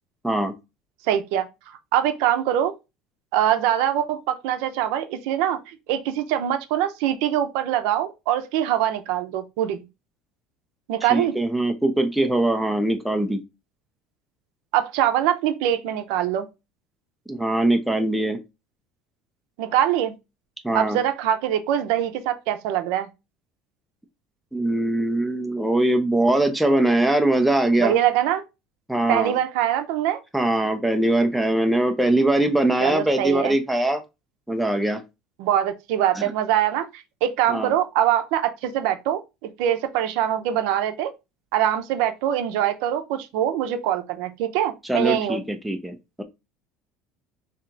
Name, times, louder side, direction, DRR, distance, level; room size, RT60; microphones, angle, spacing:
voice 1, 1.1-1.4 1.9-2.7 3.3-9.8 10.9-11.3 14.7-16.5 19.6-20.1 20.7-23.1 27.8-28.4 29.1-30.2 32.8-33.6 35.4-39.2 39.6-41.1 41.5-45.4, right 11 dB, 70° right, 0.6 m, -23 dB
voice 2, 11.1-13.4 17.3-18.4 20.6-21.0 24.5-28.0 28.9-29.4 30.3-34.0 34.5-35.0 36.2-36.3 37.5-37.7 44.8-46.2, right 1 dB, ahead, 0.4 m, -22 dB
3.3 x 2.8 x 3.7 m
cardioid pair, 170°, 0 cm